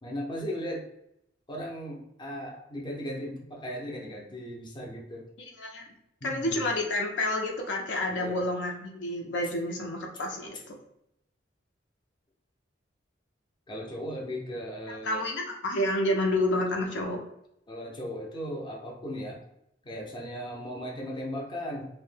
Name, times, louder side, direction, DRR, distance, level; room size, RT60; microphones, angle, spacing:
voice 1, 0.0-0.9 1.5-5.3 6.2-6.6 8.1-8.4 13.7-15.2 17.7-19.4 19.8-21.9, equal, 25° left, -2 dB, 0.5 m, -37 dB
voice 2, 5.6-5.9 6.2-10.8 14.9-17.2, left 1 dB, 70° left, 1 dB, 0.5 m, -29 dB
2.6 x 2.1 x 3.2 m, 0.80 s
head